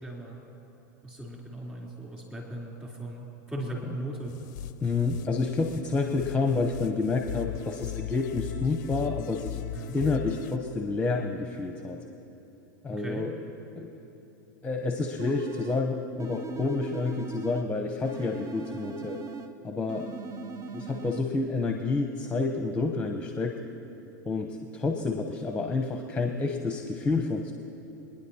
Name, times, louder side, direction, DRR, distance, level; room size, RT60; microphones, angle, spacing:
voice 1, 0.0-0.4 1.0-4.4 9.7-10.0 12.9-13.3, right 1 dB, 15° right, -4 dB, 3.5 m, -38 dB
sound 1, 4.3-10.6, left 13 dB, 65° left, 0.5 m, -38 dB
voice 2, 4.8-9.6 9.9-12.0 12.8-13.3 13.8-13.9 14.6-19.2 19.6-20.1 20.7-23.5 24.2-27.5, left 3 dB, 15° left, 3 dB, 0.9 m, -29 dB
sound 2, 15.2-15.9 16.2-17.7 18.0-19.6 19.9-21.2, right 4 dB, 35° right, 0.7 m, -39 dB
26.5 x 10.0 x 2.9 m, 3.0 s
hypercardioid pair, 105°, 10 cm